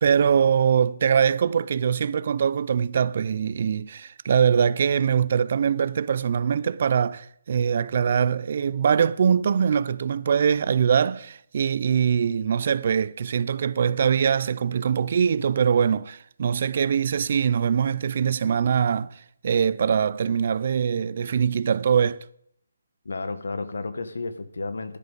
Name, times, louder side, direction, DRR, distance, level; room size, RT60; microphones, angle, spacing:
voice 1, 0.0-19.1 19.4-22.2, right 7 dB, 45° right, 0.4 m, -22 dB
voice 2, 23.0-25.0, left 3 dB, 80° left, 1.4 m, -32 dB
15.5 x 11.0 x 4.0 m
hypercardioid pair, 165°, 0 cm